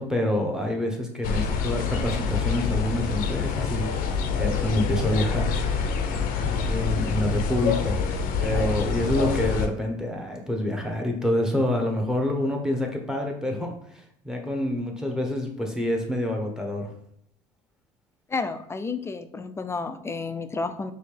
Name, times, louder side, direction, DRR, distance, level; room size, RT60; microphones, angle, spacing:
voice 1, 0.0-3.9 4.4-5.5 6.4-8.0 8.4-16.9, left 1 dB, 5° right, 2 dB, 0.9 m, -27 dB
sound 1, 1.2-9.7, left 5 dB, 65° left, 0.6 m, -26 dB
voice 2, 18.3-20.9, left 4 dB, 15° left, 10 dB, 0.3 m, -31 dB
4.2 x 2.8 x 3.3 m, 0.70 s
supercardioid pair, 95°, 16 cm